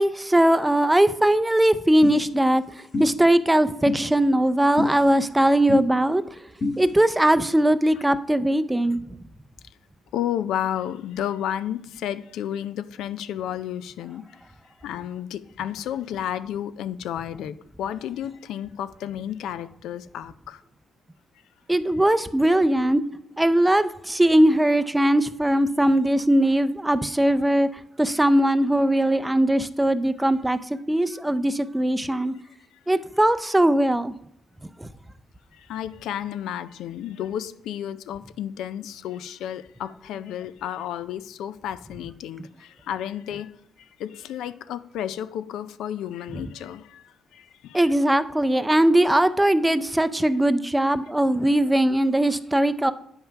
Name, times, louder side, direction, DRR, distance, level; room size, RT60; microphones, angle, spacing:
voice 1, 0.0-2.6 3.0-6.2 6.8-9.0 21.7-23.0 23.4-27.7 28.0-30.6 30.9-32.3 32.9-34.1 34.8-34.9 47.7-52.9, right 1 dB, 10° right, 0.5 m, -20 dB
sound 1, 2.0-2.2 2.9-3.1 3.8-4.0 4.8-4.9 5.7-5.8 6.6-6.7, left 3 dB, 40° left, 2.0 m, -24 dB
voice 2, 10.1-14.2 14.8-20.6 35.5-47.9, left 10 dB, 85° left, 0.4 m, -32 dB
8.6 x 5.6 x 5.7 m
cardioid pair, 90°, 0 cm